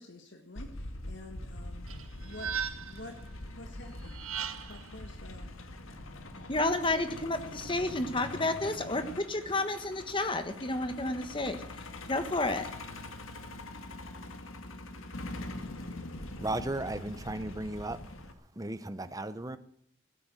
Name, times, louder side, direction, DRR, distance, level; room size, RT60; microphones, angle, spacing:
voice 1, 0.0-1.9 2.1-2.5 2.9-3.2 3.6-4.2 4.7-5.5, left 2 dB, 60° left, 5 dB, 1.6 m, -48 dB
Truck, 0.6-18.3, left 2 dB, 85° left, 1.8 m, -43 dB
sound 1, 1.9-3.1 4.0-4.9, right 7 dB, 90° right, 1.3 m, -37 dB
voice 2, 6.5-11.6 12.1-12.7, left 2 dB, 25° left, 9 dB, 1.4 m, -31 dB
voice 3, 16.4-18.0 18.6-19.6, right 2 dB, 15° right, 12 dB, 0.8 m, -35 dB
17.0 x 8.6 x 9.1 m, 0.66 s
head